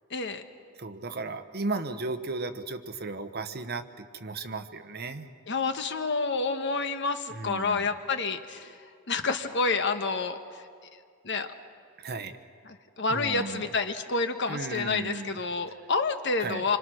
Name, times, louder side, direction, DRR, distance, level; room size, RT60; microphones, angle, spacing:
voice 1, 0.1-0.5 5.5-8.8 9.1-10.6 11.2-11.5 12.6-16.8, left 4 dB, 60° left, 7 dB, 1.4 m, -29 dB
voice 2, 0.8-5.3 7.4-7.9 12.0-12.4 13.1-13.6 14.5-15.4 16.4-16.6, right 3 dB, 50° right, 9 dB, 1.1 m, -35 dB
26.5 x 26.0 x 6.3 m, 2.2 s
head